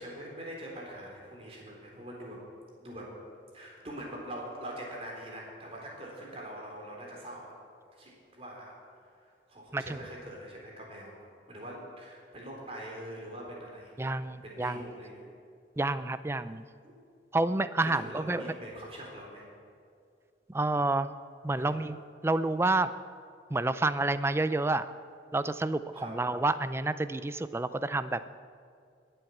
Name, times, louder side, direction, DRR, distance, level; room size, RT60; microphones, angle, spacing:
voice 1, 0.0-2.4 2.8-3.1 3.5-7.5 8.0-8.7 9.1-14.1 14.4-15.3 16.8-16.9 17.8-19.4 21.5-21.8 25.9-26.1, right 1 dB, 35° right, -2 dB, 3.8 m, -43 dB
voice 2, 14.0-14.8 15.8-16.6 17.3-18.4 20.5-21.1 21.4-22.0 22.2-22.9 23.5-24.8 25.3-28.3, right 2 dB, 15° right, 13 dB, 0.4 m, -29 dB
21.0 x 7.9 x 7.2 m, 2.3 s
head